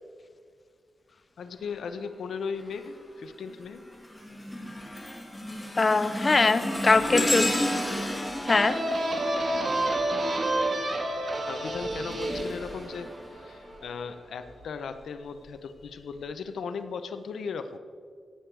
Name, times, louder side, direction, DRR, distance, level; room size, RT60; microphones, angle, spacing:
voice 1, 1.4-3.8 6.8-7.4 11.4-17.8, left 5 dB, 90° left, 10 dB, 0.7 m, -37 dB
sound 1, 2.6-3.0 3.5-10.3 11.5-13.7 14.4-14.6 15.5-15.6, left 1 dB, 15° left, 2.1 m, -33 dB
voice 2, 5.8-7.4 8.5-8.8, left 3 dB, 35° left, 12 dB, 0.4 m, -22 dB
sound 2, 8.5-13.9, right 1 dB, 50° right, 1.8 m, -30 dB
16.5 x 7.8 x 4.7 m, 2.1 s
wide cardioid pair, 115°, 0 cm